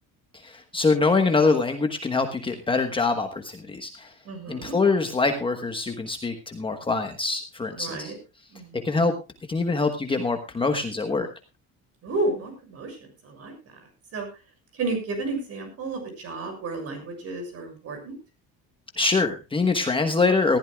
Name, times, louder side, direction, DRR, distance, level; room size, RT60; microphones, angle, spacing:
voice 1, 0.4-4.1 4.5-8.1 8.8-9.1 9.5-11.3 19.0-20.6, left 3 dB, 15° left, 5 dB, 1.2 m, -24 dB
voice 2, 4.2-4.8 7.7-8.2 8.5-9.0 12.0-14.3 14.7-18.2, right 3 dB, 40° right, 6 dB, 6.8 m, -32 dB
19.5 x 15.0 x 2.3 m, 0.29 s
cardioid pair, 165°, 36 cm